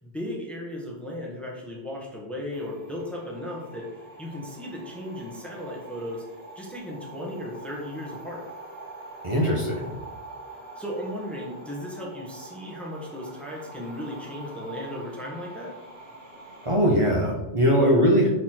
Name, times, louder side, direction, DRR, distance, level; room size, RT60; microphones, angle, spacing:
voice 1, 0.0-3.9 4.2-6.2 6.5-8.4 10.8-15.7, left 1 dB, ahead, -3 dB, 1.3 m, -36 dB
sound 1, 2.5-16.8, right 2 dB, 90° right, 2.9 m, -44 dB
voice 2, 9.2-9.9 16.6-18.3, equal, 30° right, -4 dB, 1.2 m, -21 dB
6.3 x 4.1 x 4.4 m, 0.98 s
omnidirectional pair, 1.0 m